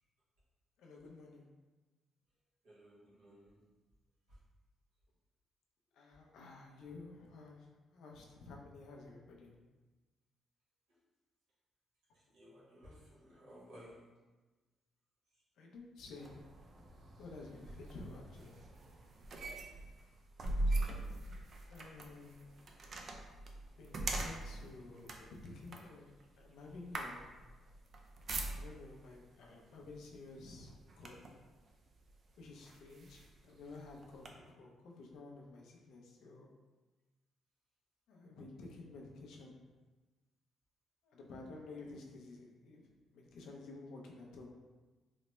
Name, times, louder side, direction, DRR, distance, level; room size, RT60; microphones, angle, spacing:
voice 1, 0.8-1.5 5.9-9.5 15.6-16.5 17.2-18.6 21.7-22.4 23.8-27.3 28.6-30.7 31.0-31.4 32.4-36.5 38.1-39.6 41.0-44.5, left 3 dB, 80° left, 0 dB, 0.5 m, -52 dB
voice 2, 2.6-3.5 12.3-14.0, equal, 85° right, -8 dB, 1.4 m, -57 dB
sound 1, 16.2-29.0 29.8-30.0 30.4-31.5 32.1-32.2 32.6-34.3, right 2 dB, 50° right, 0.4 m, -42 dB
3.9 x 2.1 x 3.1 m, 1.3 s
cardioid pair, 90°, 0 cm